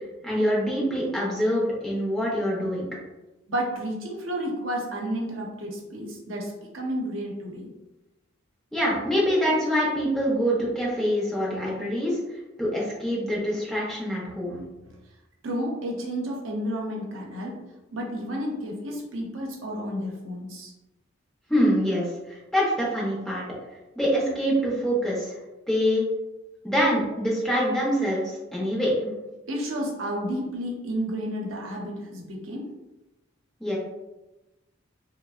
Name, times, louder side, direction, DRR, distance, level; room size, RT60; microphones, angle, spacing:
voice 1, 0.2-2.9 8.7-12.2 12.6-14.6 21.5-23.4 24.0-25.3 25.7-26.0 26.6-28.2 28.5-29.1 33.6-33.8, equal, 5° left, -5 dB, 0.5 m, -25 dB
voice 2, 3.5-7.7 14.8-15.0 15.4-17.6 17.9-20.7 29.5-32.7, equal, 75° right, -1 dB, 0.7 m, -31 dB
3.3 x 2.0 x 2.3 m, 1.0 s
head